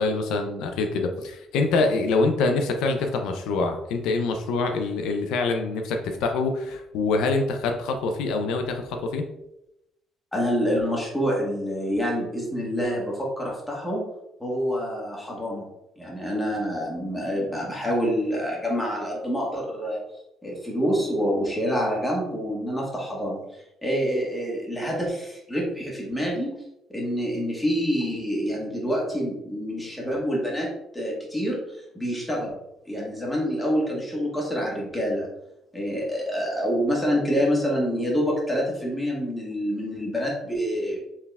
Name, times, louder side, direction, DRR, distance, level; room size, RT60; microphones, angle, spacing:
voice 1, 0.0-9.2, left 3 dB, 85° left, 5 dB, 0.4 m, -25 dB
voice 2, 10.3-14.0 14.4-15.6 16.0-20.0 20.4-23.4 23.8-26.5 26.9-30.7 30.9-31.6 31.9-32.6 32.9-35.3 35.7-41.0, equal, 10° left, -3 dB, 1.5 m, -27 dB
4.4 x 3.5 x 2.3 m, 0.85 s
cardioid pair, 95°, 0 cm